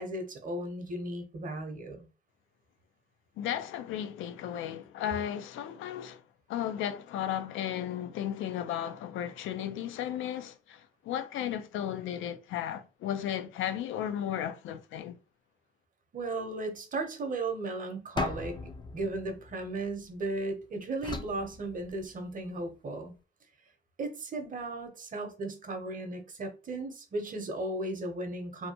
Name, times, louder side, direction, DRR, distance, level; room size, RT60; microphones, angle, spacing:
voice 1, 0.0-2.1 16.1-18.6 18.9-23.1 24.0-28.7, right 2 dB, 40° right, 0.8 m, -36 dB
voice 2, 3.4-6.2 6.5-15.2, left 10 dB, 80° left, 0.4 m, -35 dB
sound 1, 18.2-20.4 21.0-22.4, left 4 dB, 25° left, 0.4 m, -39 dB
2.7 x 2.2 x 2.8 m
cardioid pair, 90°, 20 cm